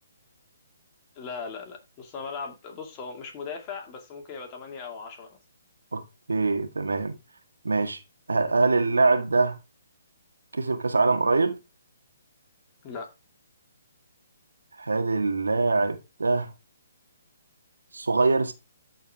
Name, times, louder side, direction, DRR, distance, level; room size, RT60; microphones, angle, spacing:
voice 1, 1.2-5.4 12.8-13.1, left 5 dB, 25° left, 2.4 m, -38 dB
voice 2, 6.3-7.2 7.6-8.0 8.3-9.6 10.5-11.6 14.8-16.5 17.9-18.5, right 3 dB, 75° right, 1.8 m, -23 dB
13.5 x 4.7 x 3.6 m
figure-of-eight pair, 135°, 0 cm